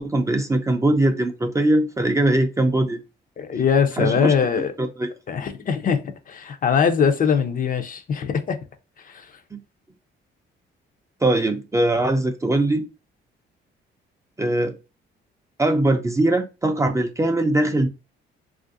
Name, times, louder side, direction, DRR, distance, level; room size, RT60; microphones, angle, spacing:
voice 1, 0.0-3.0 4.0-4.3 4.8-5.1 9.5-9.6 11.2-12.9 14.4-14.8 15.6-17.9, right 1 dB, 15° right, 0.4 m, -21 dB
voice 2, 3.4-4.7 5.3-8.6 9.0-9.4, left 6 dB, 45° left, 0.5 m, -22 dB
3.2 x 2.4 x 2.5 m
cardioid pair, 90°, 20 cm